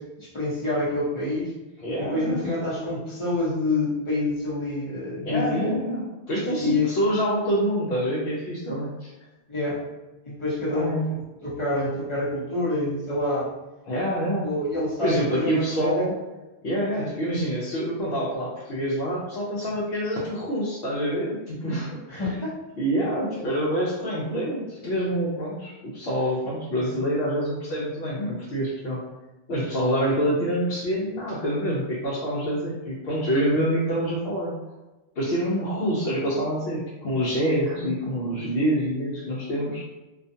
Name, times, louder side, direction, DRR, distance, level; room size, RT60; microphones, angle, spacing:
voice 1, 0.0-1.5 2.0-5.8 6.6-6.9 9.5-9.8 10.2-13.5 14.4-16.1 17.0-17.1 22.1-22.6 23.4-23.5 33.5-33.6, left 2 dB, 35° left, -7 dB, 0.7 m, -27 dB
voice 2, 1.8-2.4 5.2-9.1 10.7-11.1 13.9-14.5 15.0-16.1 16.6-22.3 22.8-29.0 29.5-34.5 35.2-39.8, equal, 75° left, -7 dB, 0.9 m, -26 dB
2.4 x 2.2 x 2.6 m, 1.1 s
omnidirectional pair, 1.1 m